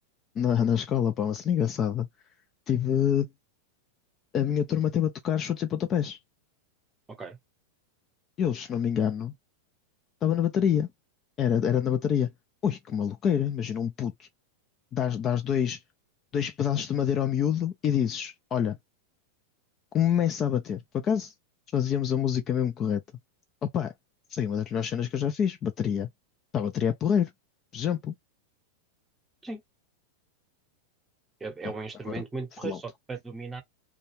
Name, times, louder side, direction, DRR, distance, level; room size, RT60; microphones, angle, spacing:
voice 1, 0.4-2.1 2.7-3.3 4.3-6.2 8.4-9.3 10.2-10.9 11.4-12.3 12.6-14.3 14.9-15.8 16.3-18.8 19.9-21.3 21.7-23.0 23.6-23.9 24.3-26.1 26.5-27.3 27.7-28.1 32.1-32.2 32.6-32.8, left 9 dB, 30° left, 0.4 m, -26 dB
voice 2, 31.4-33.6, right 4 dB, 15° right, 0.8 m, -37 dB
2.3 x 2.2 x 3.1 m
figure-of-eight pair, 90°, 0 cm